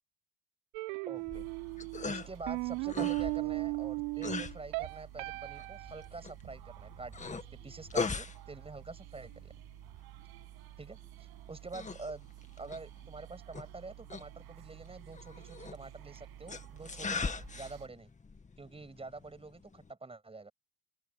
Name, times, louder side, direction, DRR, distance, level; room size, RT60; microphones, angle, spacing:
sound 1, 0.7-6.1, right 30 dB, 80° right, 3.5 m, -36 dB
voice 1, 1.1-1.5 2.0-9.5 10.8-11.0 11.5-12.3 12.6-18.1 18.6-20.5, right 3 dB, 15° right, 6.5 m, -46 dB
sound 2, 1.2-19.9, left 4 dB, 15° left, 2.1 m, -42 dB
sound 3, 1.3-17.9, right 18 dB, 60° right, 7.0 m, -52 dB
open air
supercardioid pair, 105°, 42 cm